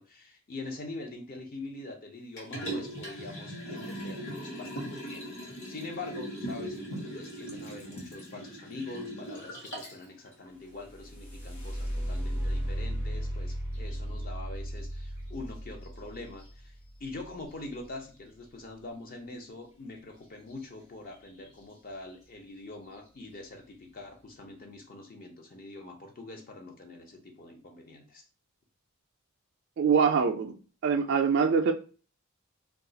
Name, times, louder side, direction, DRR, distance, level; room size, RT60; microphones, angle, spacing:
voice 1, 0.0-28.2, left 2 dB, 40° left, 3 dB, 0.5 m, -44 dB
Liquid, 2.4-10.0 10.5-10.6, right 1 dB, 55° left, 1.0 m, -39 dB
sound 1, 10.6-18.4 20.5-20.6 21.1-21.6 22.2-22.3 22.8-23.2, equal, 80° left, 1.2 m, -36 dB
voice 2, 29.8-30.6 30.8-31.7, right 6 dB, 50° right, 3 dB, 0.3 m, -24 dB
2.3 x 2.3 x 3.8 m, 0.38 s
head